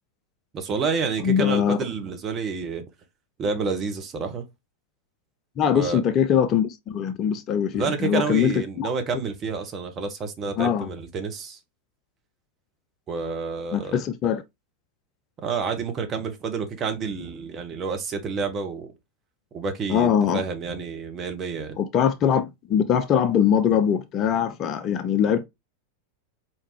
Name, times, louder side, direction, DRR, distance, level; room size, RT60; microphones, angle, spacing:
voice 1, 0.5-2.8 3.4-4.4 5.7-6.0 7.7-11.6 13.1-14.0 15.4-18.9 19.5-21.8, right 5 dB, 25° right, 1.1 m, -29 dB
voice 2, 1.2-1.8 5.6-8.5 8.8-8.9 10.6-10.9 13.7-14.4 19.9-20.4 21.8-25.5, left 8 dB, 30° left, 0.5 m, -22 dB
4.5 x 3.5 x 3.2 m
figure-of-eight pair, 90°, 0 cm